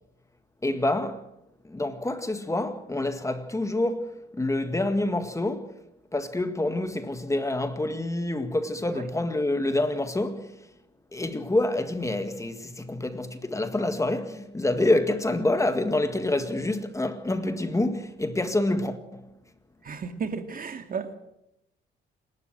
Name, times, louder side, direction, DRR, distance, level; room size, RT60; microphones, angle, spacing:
voice 1, 0.6-1.3 1.6-5.8 6.1-10.7 11.1-19.3, left 2 dB, 15° left, 1.9 m, -27 dB
voice 2, 19.8-21.2, right 5 dB, 45° right, 2.3 m, -33 dB
28.0 x 12.5 x 7.6 m
cardioid pair, 90°, 20 cm